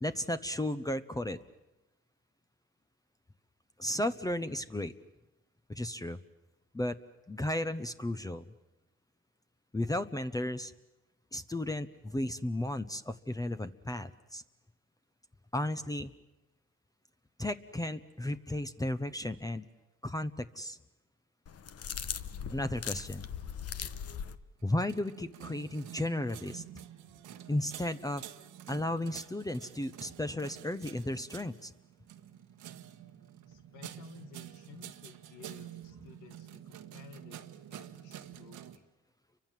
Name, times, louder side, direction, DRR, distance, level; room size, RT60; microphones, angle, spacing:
voice 1, 0.0-1.4 3.8-4.9 5.7-6.2 6.7-7.0 7.3-8.4 9.7-10.7 11.3-14.4 15.5-16.1 17.4-19.6 20.0-20.8 22.5-23.3 24.6-26.6 27.5-28.2 28.7-31.7, left 1 dB, 10° left, 10 dB, 0.9 m, -34 dB
sound 1, 21.5-24.4, left 7 dB, 55° left, 1.2 m, -39 dB
sound 2, 24.6-38.8, right 11 dB, 85° right, 1.5 m, -49 dB
voice 2, 33.5-37.4 37.7-38.9, left 7 dB, 85° left, 7 dB, 1.8 m, -54 dB
30.0 x 24.0 x 7.6 m, 0.97 s
cardioid pair, 90°, 30 cm